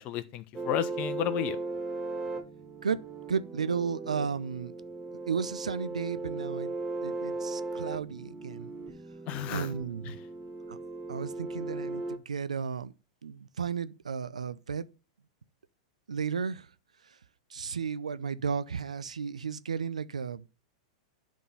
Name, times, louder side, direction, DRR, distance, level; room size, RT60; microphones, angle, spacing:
voice 1, 0.0-1.6 9.3-9.7 10.0-10.2, left 12 dB, 40° left, 0.9 m, -32 dB
sound 1, 0.5-12.2, right 3 dB, 10° right, 1.1 m, -37 dB
voice 2, 3.3-4.7 5.3-6.7 7.0-8.7 9.5-10.2 10.7-10.8 11.1-12.9 13.2-14.9 16.1-16.7 17.5-20.5, right 6 dB, 90° right, 0.5 m, -33 dB
10.0 x 3.7 x 5.6 m
hypercardioid pair, 105°, 4 cm